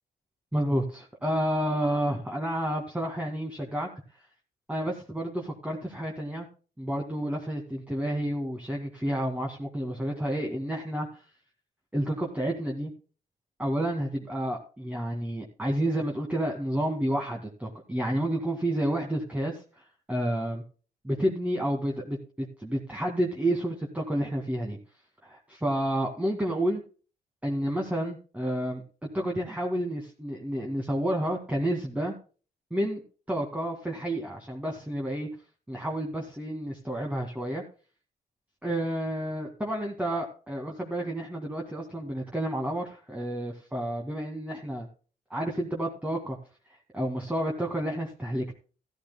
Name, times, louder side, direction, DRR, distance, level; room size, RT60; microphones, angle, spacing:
voice 1, 0.5-3.9 4.7-6.5 6.8-11.2 11.9-12.9 13.6-20.6 21.0-24.8 25.2-26.8 27.4-28.8 29.1-32.1 32.7-33.0 33.3-35.3 35.7-37.6 38.6-44.9 45.3-46.4 46.9-48.5, right 1 dB, 10° right, 0 dB, 2.0 m, -30 dB
14.5 x 13.0 x 2.2 m, 0.37 s
cardioid pair, 100°, 18 cm